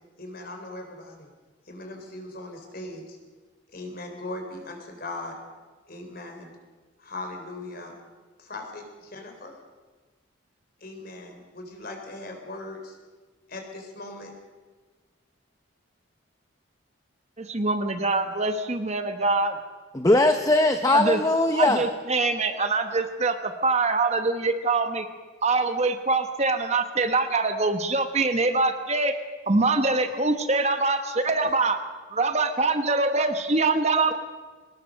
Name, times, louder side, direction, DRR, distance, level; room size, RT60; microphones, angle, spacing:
voice 1, 0.2-1.3 1.7-3.2 3.7-5.4 5.9-6.5 7.0-8.0 8.4-9.5 10.8-13.0 13.5-14.3, left 2 dB, 45° left, 4 dB, 3.9 m, -39 dB
voice 2, 17.4-19.5 20.9-21.2 21.5-25.1 25.4-29.2 29.5-31.8 32.1-34.1, right 3 dB, 30° right, 8 dB, 1.1 m, -24 dB
voice 3, 19.9-21.8, left 2 dB, 15° left, 7 dB, 0.7 m, -20 dB
23.5 x 19.0 x 6.5 m, 1.4 s
head